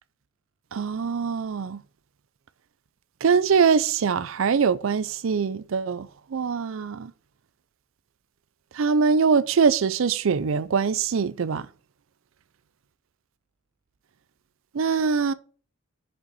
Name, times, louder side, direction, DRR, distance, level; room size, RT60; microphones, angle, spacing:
voice 1, 0.7-1.8 3.2-7.1 8.7-11.7 14.7-15.3, right 5 dB, 70° right, 0.4 m, -23 dB
6.8 x 5.4 x 6.8 m
head